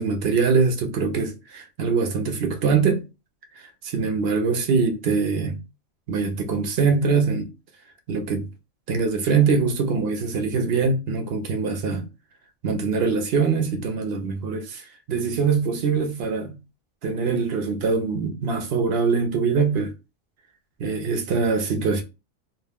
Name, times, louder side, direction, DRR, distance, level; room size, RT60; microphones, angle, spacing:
voice 1, 0.0-3.0 3.6-5.6 6.1-7.5 8.1-8.4 8.9-12.1 12.6-14.8 15.1-16.6 17.0-19.9 20.8-22.0, right 5 dB, 60° right, 0.7 m, -23 dB
2.4 x 2.2 x 3.4 m
omnidirectional pair, 1.3 m